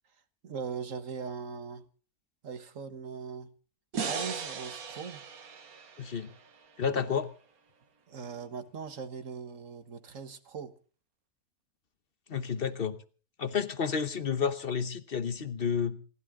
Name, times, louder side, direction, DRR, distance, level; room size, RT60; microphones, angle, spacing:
voice 1, 0.4-1.8 2.4-3.5 4.0-5.2 8.1-10.7, right 6 dB, 65° right, 11 dB, 1.7 m, -40 dB
sound 1, 3.9-7.2, right 5 dB, 85° right, 1.8 m, -38 dB
voice 2, 6.0-6.3 6.8-7.3 12.3-13.0 13.4-16.0, left 6 dB, 45° left, 12 dB, 1.0 m, -30 dB
27.5 x 12.0 x 3.7 m, 0.39 s
omnidirectional pair, 1.5 m